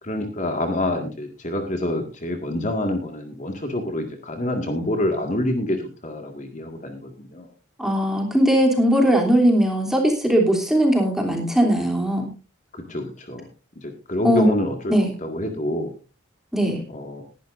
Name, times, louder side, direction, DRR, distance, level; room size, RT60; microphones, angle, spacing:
voice 1, 0.0-7.5 12.7-13.4 13.8-14.9 15.2-15.9 16.9-17.2, left 1 dB, 40° left, 4 dB, 1.9 m, -27 dB
voice 2, 7.8-12.3 14.2-14.5 14.9-15.1 16.5-16.8, equal, ahead, 1 dB, 3.0 m, -19 dB
19.5 x 11.5 x 2.6 m, 0.32 s
head